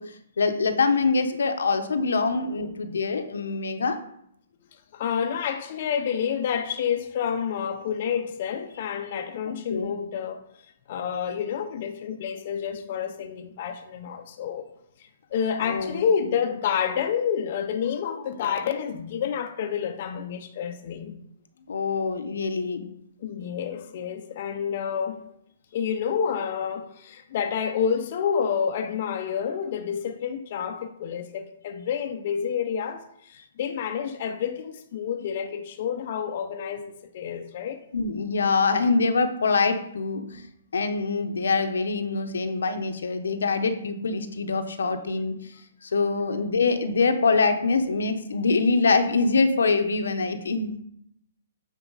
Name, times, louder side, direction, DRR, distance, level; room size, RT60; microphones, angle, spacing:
voice 1, 0.4-4.0 9.7-9.9 15.6-16.0 21.7-22.8 37.9-40.5 40.7-45.5 45.8-50.7, left 4 dB, 85° left, 0.9 m, -24 dB
voice 2, 4.9-10.4 10.9-14.6 15.0-21.2 23.2-25.3 25.7-36.9 37.1-37.8, left 7 dB, 40° left, 0.7 m, -29 dB
9.0 x 4.5 x 4.0 m
hypercardioid pair, 165°, 0 cm